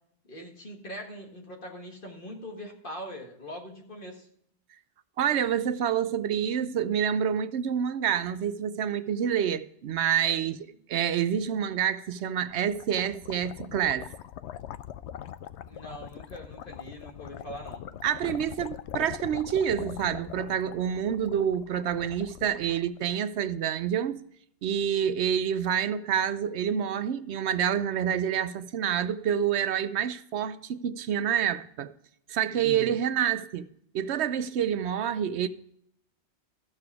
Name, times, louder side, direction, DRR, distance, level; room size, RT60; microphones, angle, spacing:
voice 1, 0.3-4.3 15.7-17.9 32.5-32.8, equal, 50° left, 1.9 m, -42 dB
voice 2, 5.2-10.6 10.9-14.1 18.0-24.2 24.6-31.9 32.3-33.7 33.9-35.5, right 9 dB, 75° right, 0.9 m, -27 dB
sound 1, 12.2-23.4, left 10 dB, 80° left, 0.9 m, -42 dB
14.0 x 6.8 x 4.7 m
omnidirectional pair, 1.1 m